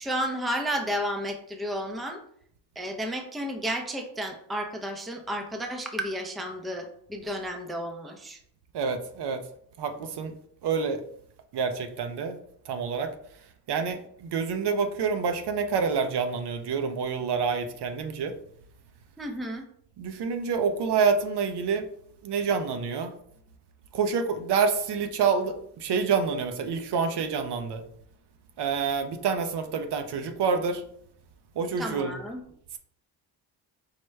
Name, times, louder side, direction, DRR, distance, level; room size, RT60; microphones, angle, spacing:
voice 1, 0.0-2.2 2.8-8.4 19.2-19.6 31.8-32.4, equal, ahead, 4 dB, 0.4 m, -32 dB
voice 2, 8.7-9.4 9.8-10.3 10.6-11.0 11.5-12.4 12.7-13.1 13.7-18.3 20.0-21.9 22.2-23.1 23.9-27.8 28.6-30.8 31.6-32.2, right 5 dB, 60° right, 7 dB, 0.6 m, -27 dB
4.8 x 2.1 x 3.1 m, 0.70 s
cardioid pair, 70°, 45 cm